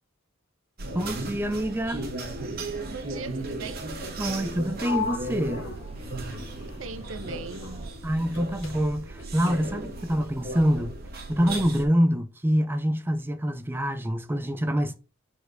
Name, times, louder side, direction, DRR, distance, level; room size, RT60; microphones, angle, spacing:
sound 1, 0.8-11.8, right 2 dB, 50° right, 1.4 m, -36 dB
voice 1, 0.9-2.0 4.2-5.6 8.0-10.9 11.3-15.0, equal, 10° right, 0.4 m, -26 dB
sound 2, 1.5-7.9, right 1 dB, 30° right, 1.3 m, -46 dB
voice 2, 2.9-3.9 6.7-7.9, right 4 dB, 80° right, 0.7 m, -39 dB
Sliding door, 4.8-8.4 8.6-10.0, left 6 dB, 75° left, 1.8 m, -39 dB
4.6 x 4.2 x 5.1 m
head